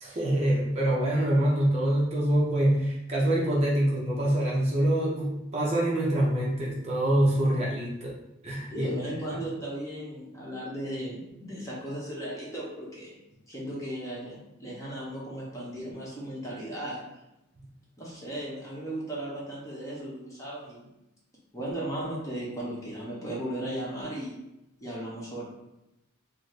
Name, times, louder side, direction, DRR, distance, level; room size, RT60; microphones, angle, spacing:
voice 1, 0.0-8.2 8.4-8.9 9.3-9.4 17.6-17.7, right 1 dB, 35° right, -5 dB, 0.6 m, -25 dB
voice 2, 8.7-13.2 13.5-17.0 18.0-20.9 21.5-24.4 24.8-25.4, right 1 dB, 15° left, -6 dB, 0.9 m, -36 dB
4.1 x 2.0 x 3.2 m, 0.89 s
head